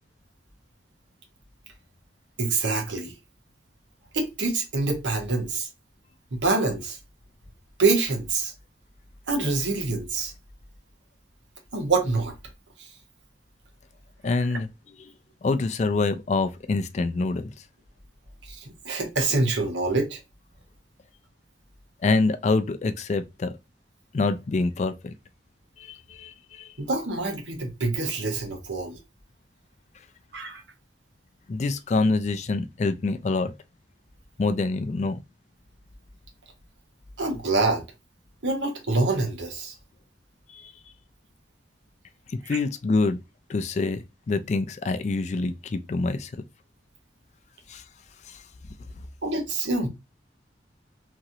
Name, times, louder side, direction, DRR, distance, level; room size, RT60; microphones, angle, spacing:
voice 1, 2.4-3.1 4.1-5.7 6.3-7.0 7.8-8.5 9.3-10.3 11.7-12.3 12.8-12.9 14.5-14.6 18.5-20.2 26.8-29.0 30.3-30.6 37.2-37.8 38.4-39.7 42.4-42.6 49.2-49.9, right 3 dB, 80° right, 0.9 m, -26 dB
voice 2, 14.2-14.7 15.4-17.5 22.0-23.5 24.1-25.1 25.8-26.7 31.5-33.5 34.4-35.2 40.5-40.7 42.3-43.2 43.5-46.3 47.7-47.8 48.3-48.4, left 3 dB, 40° left, 0.3 m, -26 dB
3.0 x 2.5 x 2.6 m
head